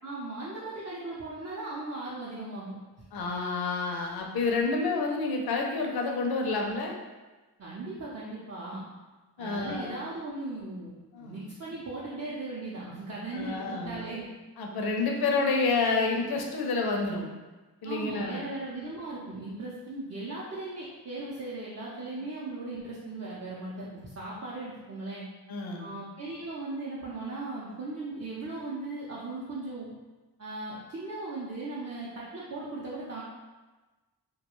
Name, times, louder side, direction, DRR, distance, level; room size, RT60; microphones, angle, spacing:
voice 1, 0.0-2.8 7.6-8.8 9.4-10.9 11.2-14.3 17.8-25.2 25.8-29.9 30.4-33.2, right 2 dB, 40° right, -7 dB, 0.5 m, -38 dB
voice 2, 3.1-6.9 9.4-10.0 11.1-11.4 13.3-14.1 14.6-17.3 17.8-18.4 25.5-25.9, left 3 dB, 65° left, 1 dB, 0.5 m, -29 dB
2.3 x 2.2 x 2.9 m, 1.2 s
cardioid pair, 60°, 41 cm